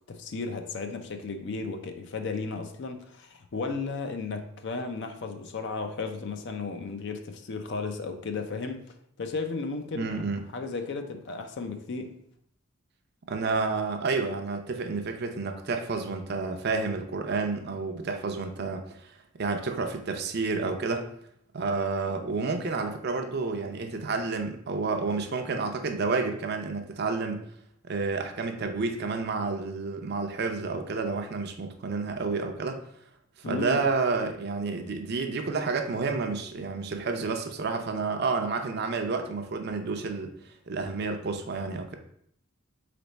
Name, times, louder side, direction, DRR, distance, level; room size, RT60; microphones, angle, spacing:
voice 1, 0.1-8.8 9.2-10.1 10.5-12.2 33.4-33.8, left 4 dB, 55° left, 6 dB, 0.4 m, -34 dB
voice 2, 9.9-10.4 13.3-19.1 19.4-21.1 21.5-27.5 27.8-32.8 33.4-42.0, right 4 dB, 50° right, 5 dB, 0.5 m, -30 dB
4.0 x 3.4 x 4.0 m, 0.69 s
head